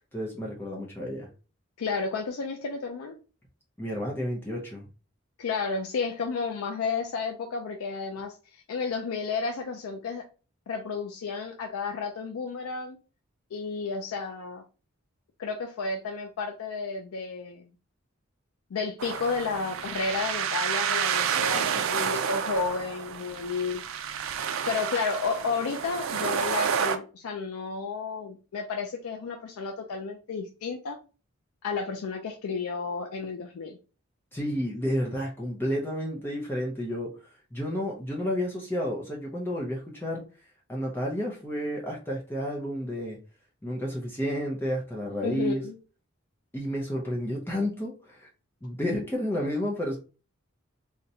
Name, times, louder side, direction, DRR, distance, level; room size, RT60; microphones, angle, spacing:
voice 1, 0.1-1.3 3.8-4.9 34.3-37.1 37.5-40.2 40.7-43.2 43.6-45.6 46.5-48.3 48.6-50.0, equal, 10° left, -2 dB, 0.5 m, -31 dB
voice 2, 1.8-3.2 5.4-10.2 10.7-13.0 13.5-14.6 15.4-17.6 18.7-23.8 24.7-31.0 31.6-33.8 45.2-45.8, left 4 dB, 90° left, 3 dB, 0.4 m, -32 dB
sound 1, 19.0-27.0, right 7 dB, 70° right, 0.4 m, -30 dB
3.9 x 2.1 x 2.7 m, 0.34 s
head